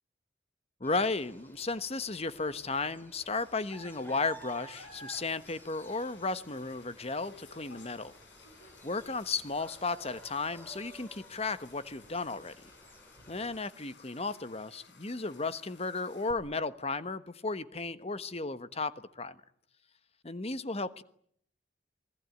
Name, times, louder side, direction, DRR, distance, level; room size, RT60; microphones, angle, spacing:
voice 1, 0.8-8.1 8.8-12.6 13.3-19.4 20.2-21.0, left 3 dB, 35° left, 13 dB, 1.2 m, -34 dB
sound 1, 0.8-13.7, right 2 dB, 10° left, 4.6 m, -53 dB
sound 2, 3.1-16.3, left 4 dB, 90° left, 4.9 m, -58 dB
28.0 x 21.0 x 9.5 m, 0.65 s
head